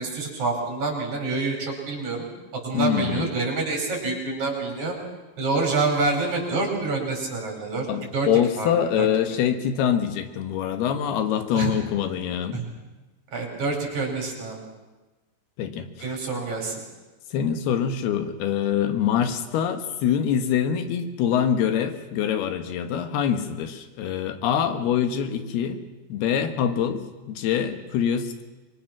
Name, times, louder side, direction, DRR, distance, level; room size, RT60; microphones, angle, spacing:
voice 1, 0.0-2.3 2.5-5.0 5.4-7.9 8.1-8.3 8.6-9.1 11.5-11.8 12.5-12.6 13.3-14.6 16.0-16.8, right 3 dB, 50° right, 1 dB, 6.1 m, -27 dB
voice 2, 2.7-3.3 7.9-12.7 15.6-16.2 17.3-25.8 26.1-28.4, left 9 dB, 90° left, 8 dB, 3.3 m, -25 dB
25.0 x 23.5 x 6.0 m, 1.2 s
omnidirectional pair, 4.4 m